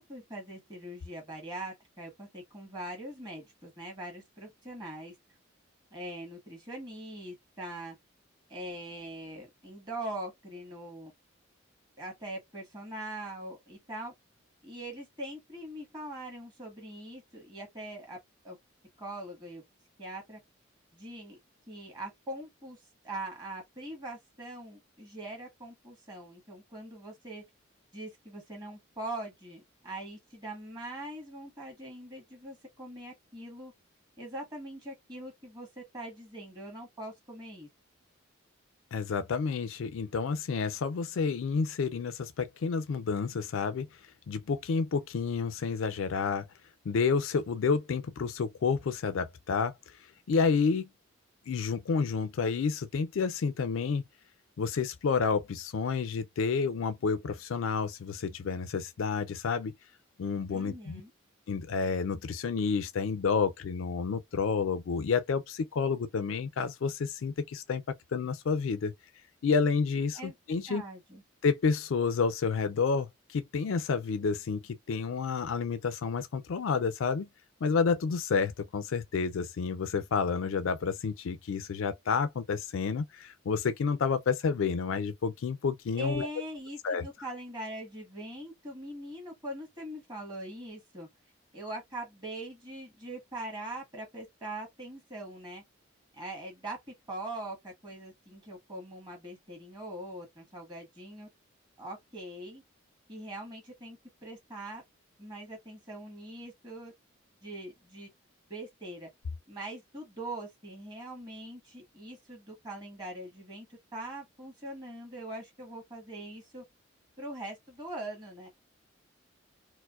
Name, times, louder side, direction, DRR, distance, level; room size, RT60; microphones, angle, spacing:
voice 1, 0.0-5.1 5.9-7.9 8.5-11.1 12.0-14.1 14.6-18.2 18.4-18.6 19.0-19.6 20.0-20.4 20.9-21.4 21.7-22.8 23.0-27.4 27.9-33.7 34.2-37.7 60.5-61.1 70.1-70.3 70.7-71.2 86.0-91.1 91.5-95.6 96.1-96.8 97.1-101.3 101.8-102.6 103.1-104.8 105.2-106.9 107.4-108.1 108.5-109.1 109.5-113.7 113.9-116.6 117.2-118.5, right 1 dB, 20° right, 1.4 m, -42 dB
voice 2, 38.9-43.9 44.3-46.4 46.9-49.7 50.3-50.9 51.5-54.0 54.6-59.7 60.2-61.0 61.5-67.8 68.1-68.9 69.4-70.8 71.4-77.3 77.6-86.3 86.8-87.1, left 5 dB, 75° left, 0.4 m, -30 dB
4.3 x 2.1 x 2.4 m
head